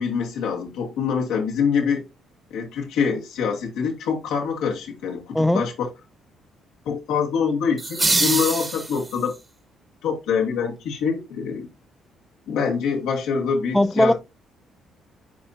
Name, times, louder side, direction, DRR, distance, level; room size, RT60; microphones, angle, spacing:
voice 1, 0.0-2.0 2.5-5.9 6.8-9.3 10.0-11.7 12.5-14.1, left 6 dB, 90° left, 2.0 m, -25 dB
sound 1, 7.8-9.4, right 2 dB, 20° right, 1.3 m, -24 dB
voice 2, 13.7-14.1, left 1 dB, 5° left, 0.5 m, -18 dB
10.5 x 4.3 x 2.7 m
cardioid pair, 95°, 0 cm